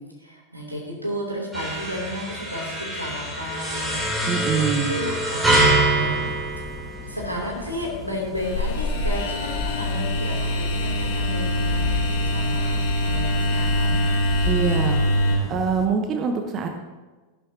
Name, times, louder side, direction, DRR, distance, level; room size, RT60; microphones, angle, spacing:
voice 1, 0.2-4.3 4.6-6.3 6.6-6.7 7.0-14.0, equal, 90° right, -1 dB, 3.0 m, -33 dB
sound 1, 1.5-7.3, right 2 dB, 5° right, 3.4 m, -24 dB
voice 2, 4.3-5.0 14.4-15.0 15.5-16.7, right 5 dB, 30° right, 5 dB, 1.1 m, -24 dB
sound 2, 5.4-15.9, left 2 dB, 15° left, 1.5 m, -39 dB
sound 3, 8.4-15.4, left 1 dB, 45° left, 3.3 m, -23 dB
14.5 x 11.5 x 2.9 m, 1.3 s
figure-of-eight pair, 90°, 0 cm